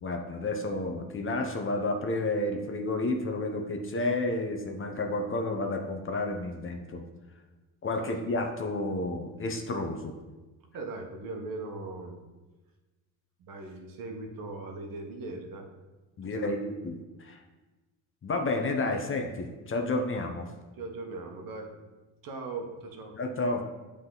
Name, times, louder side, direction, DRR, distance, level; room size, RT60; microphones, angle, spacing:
voice 1, 0.0-7.0 7.8-10.1 16.2-17.4 18.2-20.5 23.1-23.6, left 2 dB, 30° left, 4 dB, 0.8 m, -31 dB
voice 2, 10.7-12.2 13.4-15.7 16.2-16.5 18.9-19.0 20.8-21.7 22.2-23.2, right 3 dB, 55° right, 3 dB, 1.2 m, -39 dB
7.7 x 3.7 x 3.8 m, 1.2 s
supercardioid pair, 90°, 40 cm